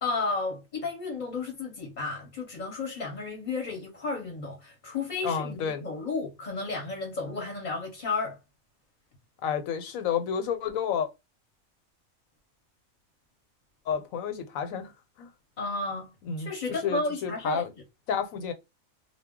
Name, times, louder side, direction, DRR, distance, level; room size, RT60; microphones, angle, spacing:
voice 1, 0.0-8.4 15.6-17.7, left 3 dB, 40° left, 0.7 m, -33 dB
voice 2, 5.2-5.9 9.4-11.1 13.9-14.9 15.2-15.3 16.3-16.5 16.8-17.7 18.1-18.5, left 7 dB, 85° left, 1.1 m, -30 dB
2.3 x 2.1 x 3.5 m
omnidirectional pair, 1.4 m